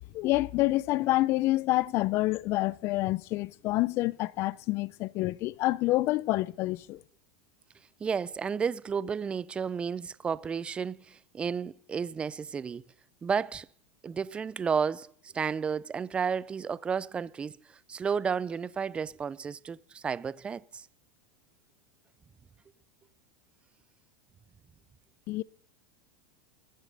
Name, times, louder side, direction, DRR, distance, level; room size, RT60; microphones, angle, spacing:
voice 1, 0.1-7.0 25.3-25.4, left 18 dB, 45° left, 0.5 m, -27 dB
voice 2, 8.0-12.8 13.2-13.7 14.0-17.6 17.9-20.9, right 6 dB, 15° right, 0.4 m, -32 dB
20.5 x 7.4 x 5.3 m
supercardioid pair, 125°, 6 cm